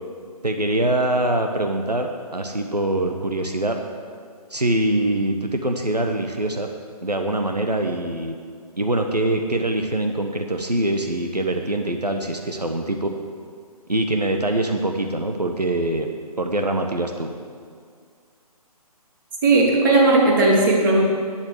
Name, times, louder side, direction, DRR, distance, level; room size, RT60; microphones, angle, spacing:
voice 1, 0.4-3.8 4.5-6.7 7.0-8.3 8.8-13.1 13.9-16.1 16.4-17.3, right 1 dB, 90° right, 4 dB, 1.3 m, -23 dB
voice 2, 19.4-21.0, right 2 dB, 30° right, -2 dB, 2.9 m, -16 dB
10.5 x 8.0 x 9.4 m, 2.1 s
figure-of-eight pair, 140°, 20 cm